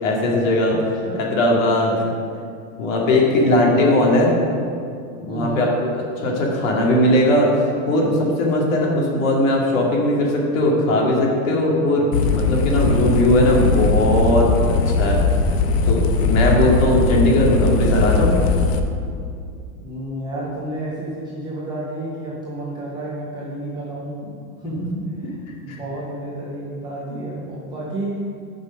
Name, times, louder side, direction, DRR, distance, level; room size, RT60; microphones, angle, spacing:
voice 1, 0.0-0.7 1.2-2.1 2.8-4.3 5.2-6.0 6.2-15.2 15.8-18.3 24.8-24.9 25.7-25.8 27.1-27.2, left 1 dB, 65° left, -2 dB, 2.4 m, -19 dB
voice 2, 0.7-1.4 5.3-5.7 8.4-8.6 16.3-16.9 17.2-17.4 19.8-24.2 24.6-24.9 25.3-28.2, right 1 dB, 10° right, -7 dB, 0.5 m, -31 dB
sound 1, 12.1-18.8, left 3 dB, 45° left, 0.7 m, -19 dB
10.5 x 5.5 x 5.2 m, 2.4 s
supercardioid pair, 180°, 43 cm